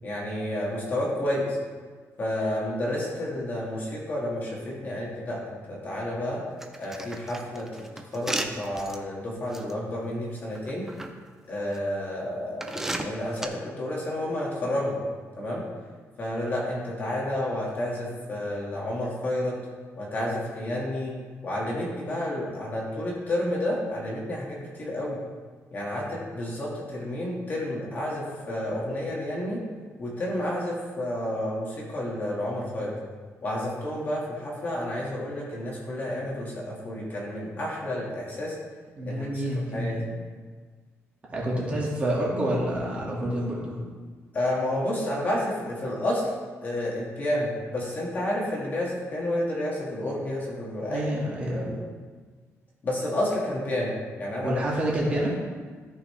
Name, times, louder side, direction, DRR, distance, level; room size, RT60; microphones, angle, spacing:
voice 1, 0.0-1.6 2.2-6.4 6.8-10.9 11.5-15.0 15.4-15.6 16.2-19.6 20.0-21.2 21.4-25.2 25.7-29.6 30.0-33.0 33.4-38.6 39.1-39.4 39.7-40.0 44.3-46.3 46.6-51.1 51.5-51.8 52.8-54.6, left 1 dB, 35° left, -4 dB, 1.9 m, -30 dB
sound 1, 6.6-9.0 9.5-9.7 10.5-11.1 11.7-11.8 12.6-13.5, right 1 dB, 10° right, 0.5 m, -33 dB
voice 2, 39.0-40.0 41.3-43.8 50.9-51.8 54.4-55.4, right 1 dB, 25° right, -5 dB, 2.0 m, -28 dB
14.0 x 5.8 x 3.3 m, 1.5 s
wide cardioid pair, 175°, 5 cm